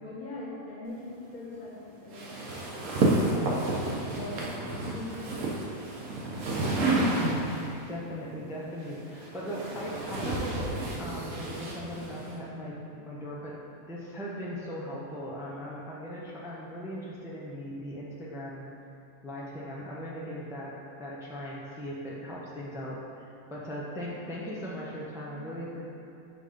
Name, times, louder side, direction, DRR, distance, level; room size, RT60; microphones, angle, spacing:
voice 1, 0.0-3.6 4.0-6.0 8.1-8.3 25.3-25.5, left 2 dB, 85° left, -7 dB, 2.0 m, -42 dB
sound 1, 2.1-7.8 8.8-12.4, right 2 dB, 65° right, 1.2 m, -30 dB
voice 2, 7.9-13.6 13.9-18.7 19.2-25.8, equal, 5° right, -5 dB, 0.4 m, -39 dB
6.1 x 3.5 x 5.0 m, 2.8 s
omnidirectional pair, 1.5 m